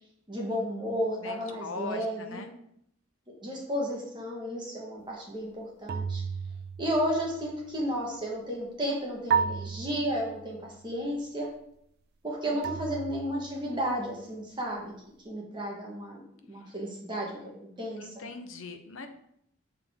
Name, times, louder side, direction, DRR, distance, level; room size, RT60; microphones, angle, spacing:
voice 1, 0.3-2.4 3.4-6.2 6.8-11.5 12.2-14.9 15.2-16.2 16.5-18.0, equal, 25° right, -3 dB, 1.5 m, -33 dB
voice 2, 1.2-2.5 12.5-12.7 18.0-19.1, left 3 dB, 85° left, 7 dB, 0.8 m, -41 dB
sound 1, 5.9-7.5 9.3-10.7 12.6-13.9, right 6 dB, 50° right, 0.3 m, -33 dB
6.8 x 4.7 x 3.6 m, 0.73 s
head